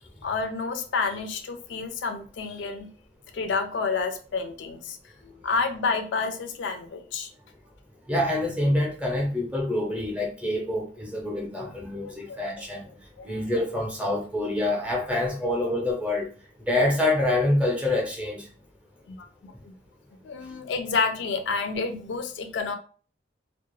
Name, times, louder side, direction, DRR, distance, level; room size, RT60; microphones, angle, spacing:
voice 1, 0.2-2.9 3.3-5.0 5.2-7.3 12.3-12.4 13.2-13.4 19.1-19.7 20.2-22.7, left 4 dB, 65° left, 7 dB, 0.3 m, -29 dB
voice 2, 8.1-12.9 13.2-16.3 16.7-18.4, left 1 dB, 5° right, -1 dB, 0.6 m, -26 dB
2.3 x 2.1 x 3.0 m, 0.41 s
head